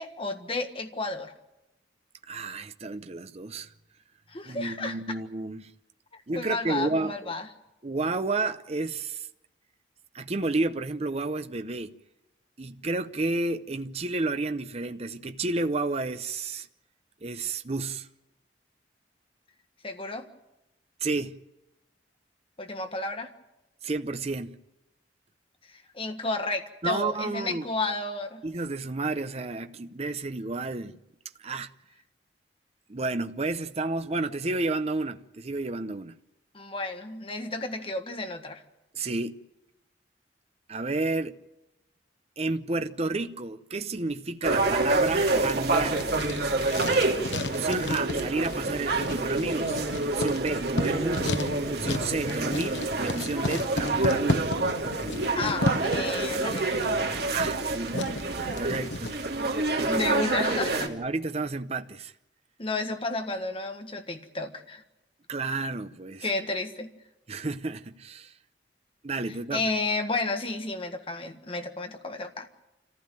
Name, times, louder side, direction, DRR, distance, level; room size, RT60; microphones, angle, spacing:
voice 1, 0.0-1.3 4.3-5.0 6.3-7.5 19.8-20.3 22.6-23.3 25.7-28.4 36.5-38.6 55.3-56.8 59.9-60.9 62.6-64.8 66.2-66.9 69.5-72.5, left 3 dB, 30° left, 1.6 m, -32 dB
voice 2, 2.3-3.7 4.4-5.7 6.3-7.3 7.8-9.3 10.1-11.9 12.6-16.7 17.2-18.1 21.0-21.4 23.8-24.6 26.8-27.7 28.4-30.9 31.4-31.7 32.9-36.2 38.9-39.3 40.7-41.4 42.4-46.1 47.4-54.5 57.3-58.1 58.5-59.2 60.9-62.1 65.3-66.3 67.3-68.3 69.0-69.7, right 3 dB, 35° right, 0.7 m, -31 dB
sound 1, 44.4-60.9, right 2 dB, 60° right, 2.8 m, -28 dB
Writing, 44.8-59.1, left 2 dB, 85° left, 1.1 m, -34 dB
26.5 x 15.0 x 9.0 m
head